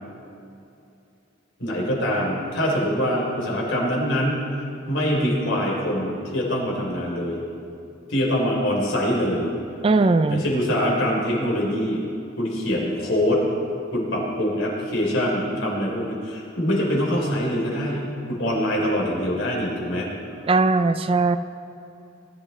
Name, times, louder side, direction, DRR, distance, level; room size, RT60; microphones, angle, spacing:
voice 1, 1.6-4.4 4.9-7.4 8.1-9.5 10.3-12.1 12.4-13.4 13.9-20.1, equal, 75° left, -3 dB, 3.4 m, -24 dB
voice 2, 9.8-10.4 20.4-21.4, right 3 dB, 30° right, 11 dB, 0.4 m, -19 dB
20.0 x 11.5 x 3.2 m, 2.6 s
head